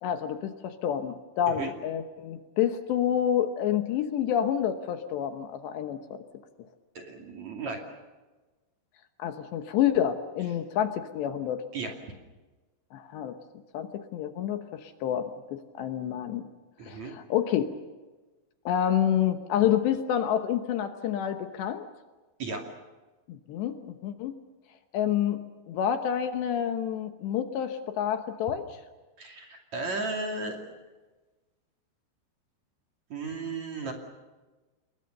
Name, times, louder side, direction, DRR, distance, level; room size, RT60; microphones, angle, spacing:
voice 1, 0.0-6.2 9.2-11.6 12.9-13.4 13.7-16.4 16.9-17.7 18.7-21.9 23.3-24.3 24.9-25.4 25.7-28.8, left 10 dB, 70° left, 7 dB, 3.1 m, -28 dB
voice 2, 6.9-7.9 11.7-11.9 16.8-17.1 22.4-22.7 29.2-30.6 33.1-33.9, right 3 dB, 45° right, 2 dB, 3.3 m, -34 dB
28.5 x 21.5 x 6.7 m, 1.2 s
omnidirectional pair, 5.6 m